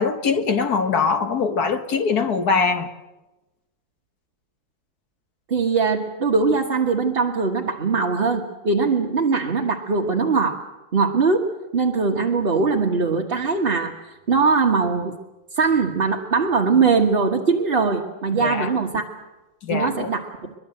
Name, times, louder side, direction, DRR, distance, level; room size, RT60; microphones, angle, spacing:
voice 1, 0.0-2.9 18.4-18.7 19.6-20.1, left 5 dB, 55° left, 1.7 m, -22 dB
voice 2, 5.5-10.6 10.9-14.0 14.3-15.1 15.6-19.0 19.7-20.5, right 4 dB, 30° right, 1.4 m, -21 dB
23.0 x 22.0 x 7.8 m
omnidirectional pair, 2.2 m